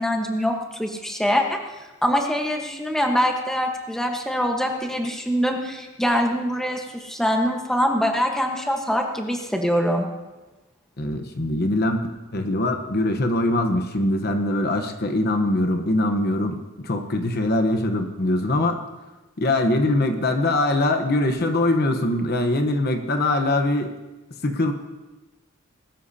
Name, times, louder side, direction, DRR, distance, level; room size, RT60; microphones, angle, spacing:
voice 1, 0.0-1.6 2.0-10.1, equal, ahead, 2 dB, 1.2 m, -24 dB
voice 2, 11.0-12.1 12.3-18.8 19.4-23.9 24.4-24.7, left 1 dB, 50° left, 6 dB, 1.0 m, -22 dB
20.5 x 13.0 x 2.8 m, 1.1 s
head